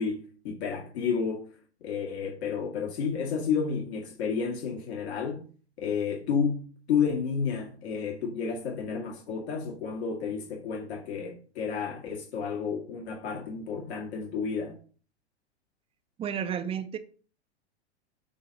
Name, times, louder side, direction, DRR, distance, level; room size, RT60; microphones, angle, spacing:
voice 1, 0.0-1.4 1.8-5.4 5.8-14.8, left 6 dB, 65° left, 2.1 m, -31 dB
voice 2, 16.2-17.0, right 8 dB, 15° right, 0.5 m, -31 dB
8.6 x 2.9 x 5.3 m
hypercardioid pair, 120°, 34 cm